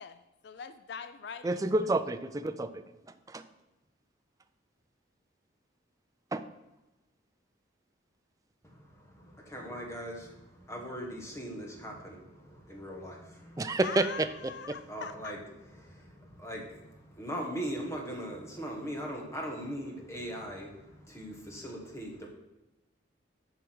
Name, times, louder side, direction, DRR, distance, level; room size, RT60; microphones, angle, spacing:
voice 1, 0.0-1.9 13.8-15.3, left 6 dB, 55° left, 10 dB, 0.4 m, -42 dB
voice 2, 1.4-2.8 3.3-3.4 6.3-6.4 13.6-14.8, right 2 dB, 15° right, 9 dB, 0.3 m, -29 dB
voice 3, 8.6-13.8 14.9-22.3, equal, 15° left, 0 dB, 1.4 m, -40 dB
7.9 x 4.8 x 6.1 m, 1.0 s
head